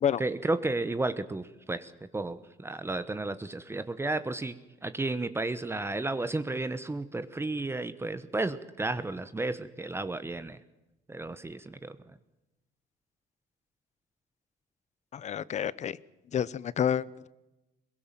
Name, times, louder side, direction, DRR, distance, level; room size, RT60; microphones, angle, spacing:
voice 1, 0.2-4.5 4.8-10.6 11.1-12.0, right 2 dB, 15° right, 13 dB, 1.0 m, -33 dB
voice 2, 15.1-16.0 16.3-17.3, left 9 dB, 45° left, 20 dB, 0.8 m, -29 dB
22.0 x 20.0 x 7.5 m, 1.0 s
cardioid pair, 110°, 17 cm